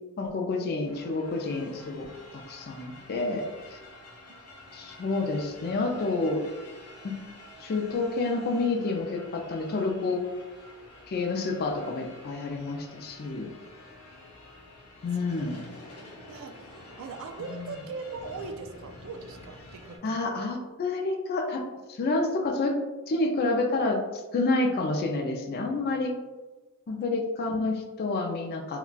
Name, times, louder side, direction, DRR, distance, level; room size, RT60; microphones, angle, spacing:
voice 1, 0.2-2.1 2.3-3.8 4.7-6.5 7.0-7.1 7.6-10.2 11.1-13.5 15.0-15.6 17.5-17.7 20.0-22.8 23.1-24.0 24.3-26.2 26.9-28.8, left 3 dB, 45° left, 3 dB, 0.4 m, -29 dB
sound 1, 0.8-20.0, left 1 dB, 80° left, 0.7 m, -49 dB
voice 2, 15.8-16.7 17.0-20.2, right 4 dB, 65° right, 6 dB, 0.3 m, -41 dB
3.9 x 2.2 x 2.3 m, 1.2 s
head